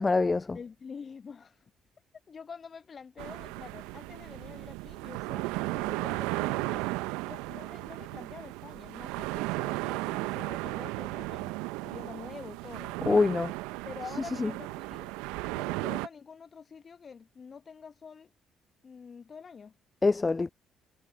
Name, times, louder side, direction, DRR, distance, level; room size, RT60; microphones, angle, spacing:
voice 1, 0.0-0.6 13.0-13.5 14.4-14.5 20.0-20.5, left 3 dB, 25° left, 0.4 m, -24 dB
voice 2, 0.5-1.6 2.3-6.8 7.2-11.6 11.8-13.0 13.8-15.1 15.5-18.3 18.8-19.7, left 6 dB, 45° left, 1.5 m, -47 dB
sound 1, 3.2-16.1, right 23 dB, 75° right, 1.0 m, -35 dB
hypercardioid pair, 45°, 0 cm